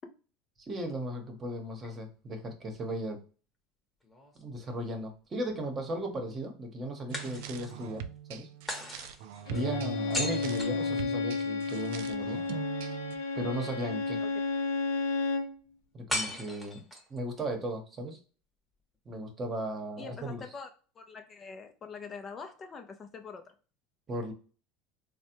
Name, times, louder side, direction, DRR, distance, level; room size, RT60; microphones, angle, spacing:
voice 1, 0.7-3.2 4.4-8.5 9.5-12.4 13.4-14.2 15.9-18.2 19.1-20.4 24.1-24.3, right 1 dB, 30° right, 0.9 m, -36 dB
sound 1, 4.0-5.1 7.1-7.9 8.7-11.5 16.1-17.2, left 1 dB, 10° left, 0.9 m, -38 dB
sound 2, 7.1-13.2, right 8 dB, 75° right, 0.3 m, -41 dB
Bowed string instrument, 9.5-15.5, left 4 dB, 90° left, 0.5 m, -32 dB
voice 2, 10.1-10.5 14.2-14.3 20.0-20.7 21.0-23.4, left 5 dB, 30° left, 0.5 m, -44 dB
3.3 x 2.1 x 2.9 m
supercardioid pair, 100°, 0 cm